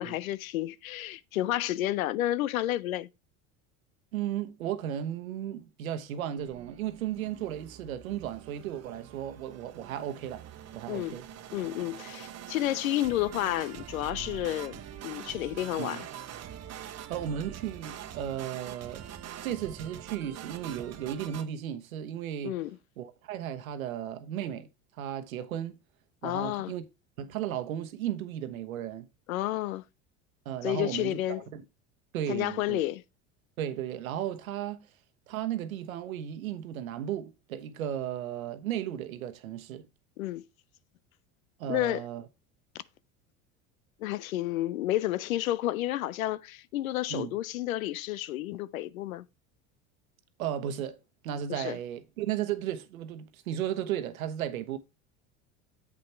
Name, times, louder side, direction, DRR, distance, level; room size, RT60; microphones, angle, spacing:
voice 1, 0.0-3.1 10.9-11.2 11.5-16.1 22.4-22.8 26.2-26.7 29.3-29.8 30.6-31.4 32.3-33.0 40.2-40.5 41.7-42.0 44.0-49.3 51.5-51.8, left 14 dB, 90° left, 0.6 m, -31 dB
voice 2, 4.1-10.4 10.7-11.2 15.8-16.0 17.1-19.0 19.4-22.5 23.0-24.7 25.0-25.8 26.2-26.8 27.2-29.1 30.4-31.2 31.5-31.6 32.1-32.8 33.6-34.8 35.3-39.9 41.6-42.2 47.1-47.4 50.4-51.0 51.2-54.8, right 10 dB, 85° right, 1.1 m, -35 dB
sound 1, 6.4-21.5, right 10 dB, 40° right, 1.1 m, -44 dB
7.6 x 5.7 x 4.4 m
hypercardioid pair, 85°, 40 cm